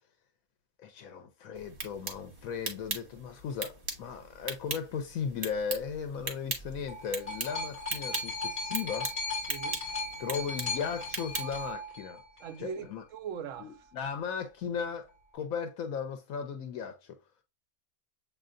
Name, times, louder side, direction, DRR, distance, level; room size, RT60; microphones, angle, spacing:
voice 1, 0.8-9.1 10.2-12.2 12.6-13.0 13.6-17.1, left 6 dB, 85° left, 1.1 m, -36 dB
sound 1, 1.5-11.7, right 3 dB, 40° right, 1.3 m, -40 dB
sound 2, 6.6-12.6 13.5-13.6, left 2 dB, 25° left, 2.4 m, -37 dB
voice 2, 9.5-9.8 12.4-13.8, right 7 dB, 70° right, 0.9 m, -40 dB
7.5 x 2.8 x 2.5 m
omnidirectional pair, 1.4 m